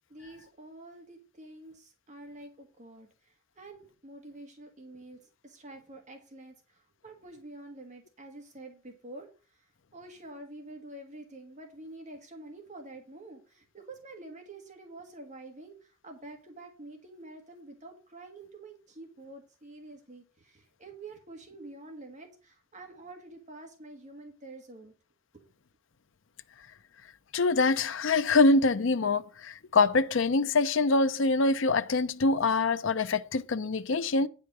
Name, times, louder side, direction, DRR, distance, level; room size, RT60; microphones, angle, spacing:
voice 1, 0.1-9.6 9.9-24.9 25.3-25.4, right 2 dB, 40° right, 1.5 m, -48 dB
voice 2, 27.3-34.3, left 3 dB, 70° left, 0.6 m, -25 dB
9.4 x 5.0 x 5.9 m
head